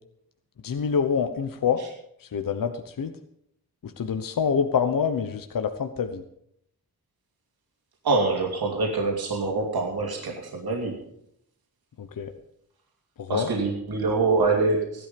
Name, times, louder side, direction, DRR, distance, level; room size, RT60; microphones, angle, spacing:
voice 1, 0.6-1.8 2.3-3.1 3.8-6.2 12.0-12.3 13.2-13.5, left 6 dB, 60° left, 7 dB, 1.0 m, -26 dB
voice 2, 8.0-11.0 13.3-15.1, right 3 dB, 70° right, 0 dB, 2.8 m, -25 dB
16.0 x 11.5 x 5.3 m, 0.73 s
wide cardioid pair, 110°, 38 cm